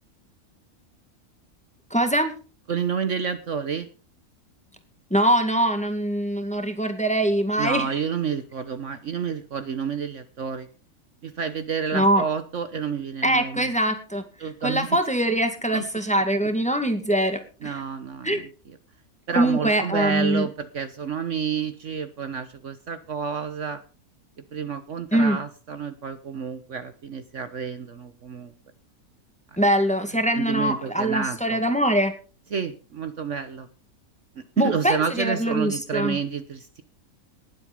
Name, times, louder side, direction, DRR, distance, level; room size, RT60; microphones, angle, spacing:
voice 1, 1.9-2.3 5.1-7.9 11.9-12.2 13.2-14.2 14.6-17.8 18.2-18.4 19.4-20.5 25.1-25.4 29.6-32.1 34.6-36.2, right 1 dB, 5° left, 7 dB, 1.9 m, -23 dB
voice 2, 2.7-3.9 7.6-10.7 11.2-13.7 14.4-14.9 15.7-15.8 17.6-18.5 19.3-23.8 24.5-28.5 29.5-29.6 30.3-31.6 32.5-33.7 34.6-36.8, right 6 dB, 55° right, 10 dB, 1.3 m, -29 dB
19.0 x 7.9 x 5.3 m, 0.37 s
omnidirectional pair, 1.6 m